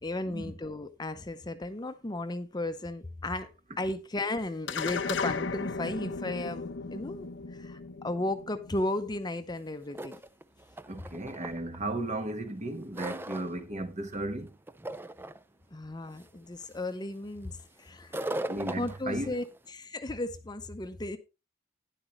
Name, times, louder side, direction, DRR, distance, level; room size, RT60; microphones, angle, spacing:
voice 1, 0.0-3.5 3.8-10.2 15.7-18.3 18.8-21.2, left 2 dB, 25° left, 0.7 m, -35 dB
sound 1, 4.7-9.3, left 4 dB, 90° left, 0.7 m, -36 dB
sound 2, 9.6-9.7 9.9-11.8 12.3-13.6 14.0-14.4 14.7-15.4 16.1-16.2 16.6-16.9 18.0-19.6, right 1 dB, 10° right, 0.4 m, -38 dB
voice 2, 10.9-14.5 18.5-19.3, right 1 dB, 40° right, 1.3 m, -35 dB
12.0 x 10.0 x 3.1 m
head